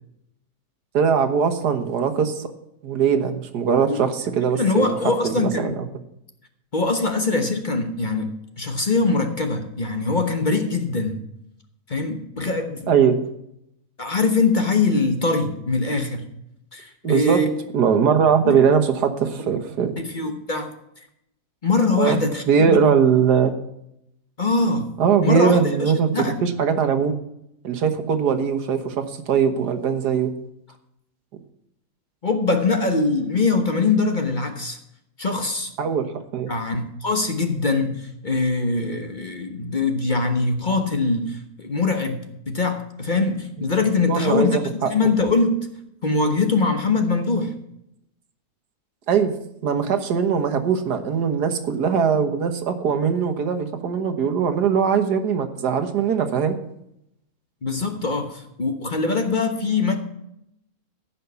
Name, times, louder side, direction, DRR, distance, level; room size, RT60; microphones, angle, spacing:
voice 1, 0.9-2.5 2.8-4.9 5.2-5.7 12.9-13.2 17.0-17.4 17.7-19.9 22.0-22.2 22.5-23.5 25.0-27.1 27.6-30.3 35.8-36.5 44.1-44.5 44.8-45.1 49.1-49.3 49.6-56.6, right 7 dB, 85° right, 8 dB, 1.8 m, -21 dB
voice 2, 4.6-5.8 6.7-11.2 11.9-12.9 14.0-16.2 16.7-17.5 18.4-18.6 20.0-20.7 21.6-22.9 24.4-24.9 25.2-26.4 32.2-34.8 35.2-35.7 36.5-44.6 44.9-45.6 46.0-47.5 57.6-60.0, left 3 dB, 35° left, 6 dB, 1.1 m, -22 dB
15.0 x 5.8 x 6.9 m, 0.79 s
omnidirectional pair, 1.7 m